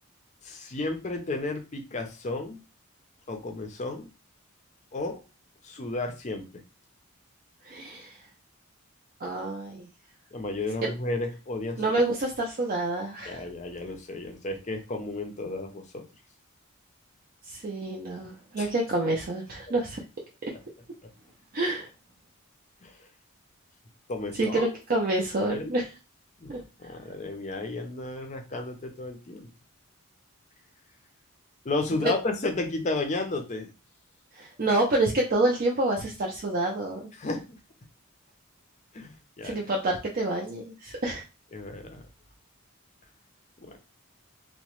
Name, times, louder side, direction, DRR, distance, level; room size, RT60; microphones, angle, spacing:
voice 1, 0.4-2.6 3.3-4.1 4.9-5.2 5.6-6.4 10.3-11.8 13.3-16.0 18.6-18.7 22.8-22.9 24.1-24.7 25.4-25.7 26.4-26.5 26.8-29.5 31.6-33.7 37.2-37.4 38.9-39.6 41.5-42.0 43.6-43.8, left 2 dB, 30° left, 5 dB, 0.5 m, -33 dB
voice 2, 7.6-8.1 9.2-9.9 10.8-10.9 11.8-13.4 17.5-20.0 20.4-20.5 21.5-21.9 24.4-25.9 26.5-26.6 32.0-32.1 34.4-37.1 39.4-41.2, right 2 dB, 40° right, -1 dB, 0.4 m, -28 dB
2.9 x 2.1 x 3.0 m, 0.30 s
head